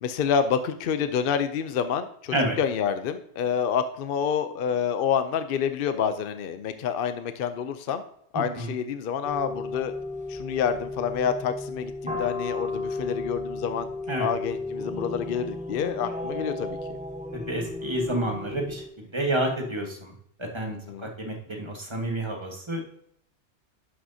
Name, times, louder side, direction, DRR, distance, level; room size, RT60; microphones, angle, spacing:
voice 1, 0.0-8.0 8.3-9.9 10.3-13.9 14.2-17.0 20.7-21.1, left 7 dB, 60° left, 10 dB, 0.7 m, -28 dB
sound 1, 9.2-18.9, left 2 dB, 5° right, 0.8 m, -34 dB
voice 2, 17.3-18.8 19.1-20.1 20.4-22.8, right 1 dB, 25° right, 1 dB, 1.4 m, -29 dB
11.0 x 6.0 x 2.7 m, 0.69 s
omnidirectional pair, 1.1 m